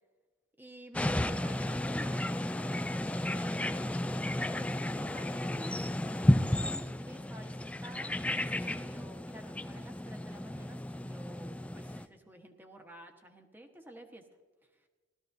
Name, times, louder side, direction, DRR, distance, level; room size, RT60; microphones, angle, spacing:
voice 1, 0.6-3.9 4.4-14.3, right 1 dB, 10° right, 4 dB, 1.1 m, -51 dB
sound 1, 0.9-12.1, left 1 dB, 5° left, 0.3 m, -33 dB
17.5 x 13.0 x 2.6 m, 1.3 s
head